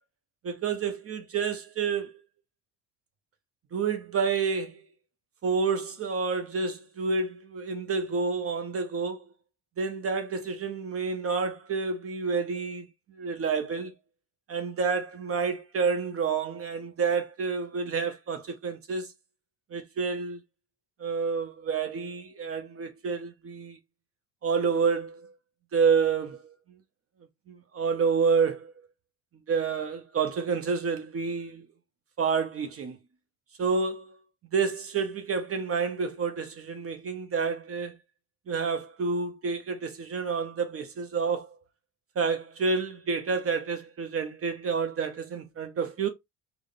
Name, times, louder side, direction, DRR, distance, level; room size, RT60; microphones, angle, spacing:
voice 1, 0.4-2.1 3.7-4.8 5.4-9.2 9.8-13.9 14.5-19.1 19.7-20.4 21.0-23.8 24.4-25.3 25.7-26.8 27.5-28.7 29.5-31.7 32.2-33.0 33.6-34.2 34.5-38.0 38.5-41.5 42.2-46.1, right 5 dB, 35° right, 0.6 m, -29 dB
3.4 x 2.0 x 2.6 m
hypercardioid pair, 75°, 42 cm